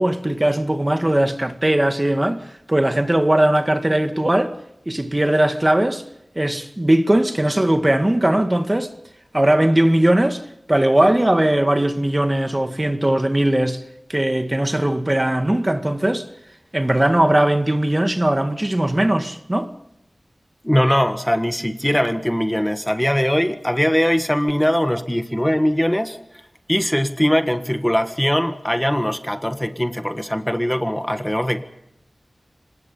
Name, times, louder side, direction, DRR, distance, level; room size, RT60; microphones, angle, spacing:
voice 1, 0.0-4.5 4.9-6.0 6.4-8.9 9.3-10.4 10.7-13.8 14.1-16.3 16.7-19.7, right 1 dB, 25° right, 1.9 m, -19 dB
voice 2, 20.6-26.2 26.7-31.6, equal, 10° left, 1.6 m, -21 dB
25.5 x 20.0 x 5.6 m
wide cardioid pair, 50°, 0 cm